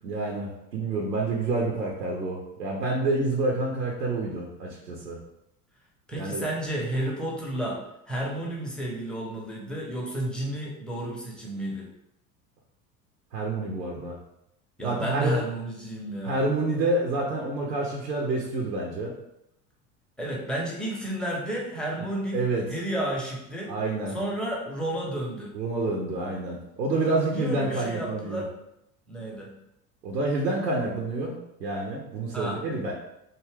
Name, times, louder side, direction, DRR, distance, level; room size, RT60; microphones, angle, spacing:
voice 1, 0.0-5.2 6.1-6.5 13.3-14.2 14.8-15.4 16.2-19.1 22.0-22.1 22.3-22.6 23.7-24.2 25.5-28.4 30.0-32.9, right 2 dB, 90° right, -1 dB, 0.6 m, -28 dB
voice 2, 6.1-11.9 14.8-16.4 20.2-22.4 22.7-23.7 24.1-25.5 27.3-28.5 29.1-29.5 32.3-32.6, right 1 dB, ahead, -3 dB, 0.5 m, -31 dB
2.6 x 2.3 x 3.2 m, 0.82 s
figure-of-eight pair, 70°, 49 cm